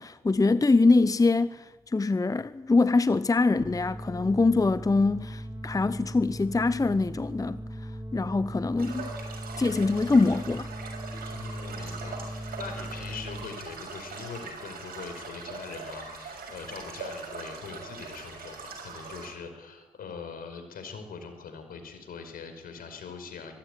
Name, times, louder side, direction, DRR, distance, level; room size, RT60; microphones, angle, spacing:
voice 1, 0.0-9.1 9.6-10.7, left 3 dB, 20° left, 0.8 m, -24 dB
sound 1, 3.6-13.5, right 1 dB, 25° right, 3.7 m, -39 dB
sound 2, 8.8-19.3, right 4 dB, 70° right, 6.8 m, -41 dB
voice 2, 11.2-23.6, left 5 dB, 65° left, 5.0 m, -42 dB
24.0 x 14.5 x 10.0 m
hypercardioid pair, 45°, 16 cm